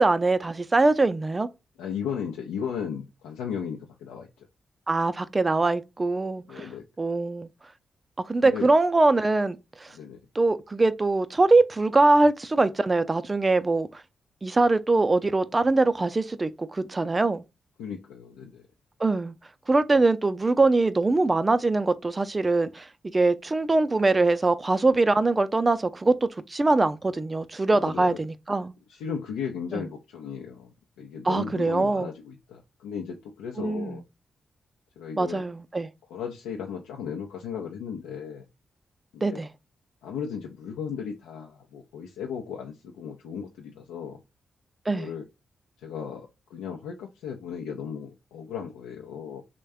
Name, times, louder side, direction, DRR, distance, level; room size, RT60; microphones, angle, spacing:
voice 1, 0.0-1.5 4.9-6.7 7.0-7.5 8.3-9.9 10.4-14.0 14.4-17.4 19.0-19.3 19.7-22.9 23.1-28.7 29.7-29.8 31.2-32.1 33.6-34.0 35.2-35.9 39.2-39.5 44.9-45.1, right 3 dB, 30° right, 0.4 m, -23 dB
voice 2, 1.8-4.5 6.5-6.8 8.4-8.7 9.9-10.2 17.8-18.7 27.7-28.2 28.9-34.0 35.0-35.4 36.1-38.5 39.1-39.4 40.0-44.2 44.9-45.3 45.8-49.4, left 7 dB, 90° left, 0.4 m, -36 dB
3.3 x 2.2 x 3.4 m
supercardioid pair, 45°, 0 cm